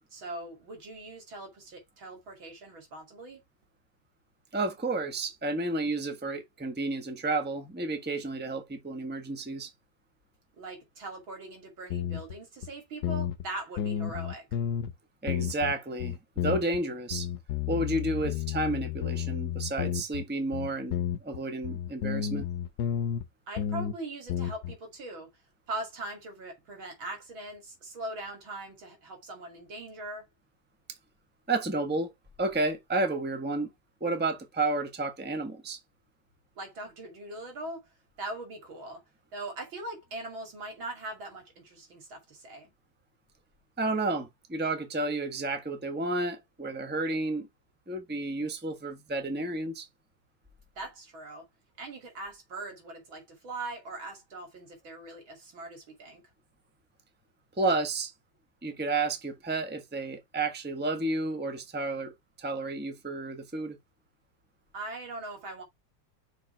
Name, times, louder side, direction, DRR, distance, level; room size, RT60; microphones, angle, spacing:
voice 1, 0.1-3.4 10.6-14.5 23.5-25.3 25.7-30.3 36.6-37.8 38.2-39.0 39.3-42.7 50.8-51.5 51.8-56.2 64.7-65.6, right 2 dB, 80° right, 3.6 m, -41 dB
voice 2, 4.5-9.7 15.2-17.3 17.7-22.4 31.5-32.1 32.4-33.7 34.0-35.8 43.8-47.5 47.9-49.9 57.6-58.1 58.6-62.1 62.4-63.8, right 2 dB, 5° right, 1.1 m, -31 dB
sound 1, 11.9-12.4 12.6-12.7 13.0-13.5 13.8-14.9 15.3-15.7 16.0-16.8 17.1-20.2 20.5-23.3 23.6-23.9 24.3-24.8, left 9 dB, 65° left, 1.4 m, -32 dB
5.9 x 4.8 x 4.3 m
omnidirectional pair, 2.1 m